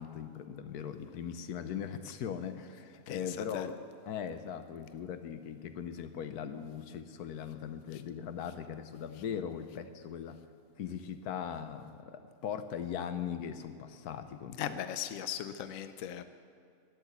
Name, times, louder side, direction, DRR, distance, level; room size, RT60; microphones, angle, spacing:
voice 1, 0.0-10.4 10.8-14.8, left 8 dB, 85° left, 10 dB, 1.3 m, -40 dB
voice 2, 14.6-16.2, left 10 dB, 65° left, 11 dB, 1.0 m, -38 dB
12.5 x 10.0 x 8.2 m, 2.4 s
omnidirectional pair, 1.6 m